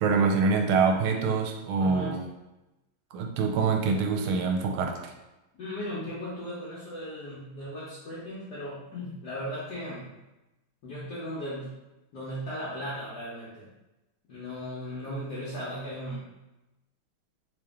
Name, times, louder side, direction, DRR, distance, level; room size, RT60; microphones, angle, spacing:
voice 1, 0.0-2.2 3.1-5.1, right 4 dB, 80° right, 2 dB, 1.4 m, -25 dB
voice 2, 1.8-2.2 5.6-10.2 10.8-11.8 12.1-13.7 14.3-16.3, equal, 60° left, -9 dB, 1.2 m, -37 dB
3.3 x 3.0 x 3.5 m, 1.0 s
omnidirectional pair, 2.4 m